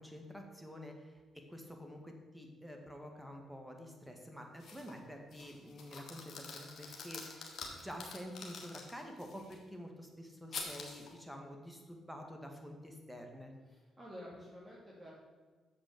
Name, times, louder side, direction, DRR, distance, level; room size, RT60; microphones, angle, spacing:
voice 1, 0.0-13.5, equal, ahead, 2 dB, 1.9 m, -49 dB
sound 1, 4.6-5.0 5.3-9.6 10.5-11.1, left 4 dB, 60° left, 1.7 m, -47 dB
voice 2, 13.7-15.1, equal, 20° right, -6 dB, 2.7 m, -50 dB
7.0 x 5.3 x 6.8 m, 1.4 s
hypercardioid pair, 50°, 0 cm